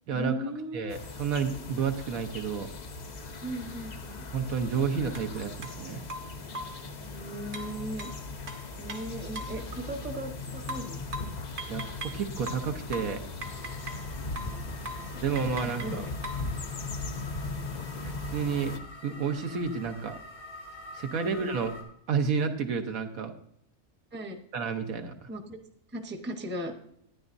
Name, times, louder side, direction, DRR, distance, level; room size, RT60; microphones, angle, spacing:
voice 1, 0.1-1.0 3.4-4.2 7.0-8.1 8.8-11.2 14.3-14.8 15.1-15.2 15.6-16.1 24.1-24.4 25.3-25.6 25.9-26.7, right 1 dB, 10° right, 4 dB, 0.8 m, -38 dB
voice 2, 0.7-2.7 4.3-6.0 11.7-13.2 15.2-16.0 18.0-18.8 19.0-20.1 20.9-21.7 22.1-23.3 24.5-25.3, right 6 dB, 70° right, 5 dB, 1.3 m, -30 dB
sound 1, 0.9-18.8, left 3 dB, 40° left, 0.6 m, -39 dB
sound 2, 5.1-5.3 5.6-5.8 6.1-6.8 7.5-9.6 10.7-12.2 12.5-14.1 14.4-14.6 14.8-15.1 15.4-16.5, right 1 dB, 55° right, 1.3 m, -40 dB
sound 3, 13.4-21.8, left 2 dB, 80° left, 2.8 m, -47 dB
12.5 x 9.7 x 2.6 m, 0.71 s
omnidirectional pair, 1.5 m